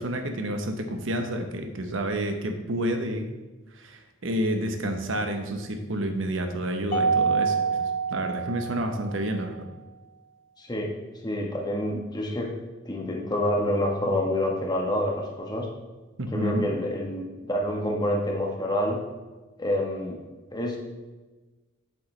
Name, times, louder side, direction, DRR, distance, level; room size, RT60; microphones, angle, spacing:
voice 1, 0.0-3.3 3.7-9.7 16.2-16.7, right 1 dB, 75° right, 6 dB, 0.9 m, -29 dB
Mallet percussion, 6.9-9.3, right 5 dB, 40° left, 0.7 m, -26 dB
voice 2, 10.6-10.9 11.2-12.5 12.8-15.7 16.3-19.0 19.6-20.2 20.5-20.8, left 1 dB, 20° left, 0 dB, 1.2 m, -27 dB
8.0 x 7.7 x 3.3 m, 1.2 s
head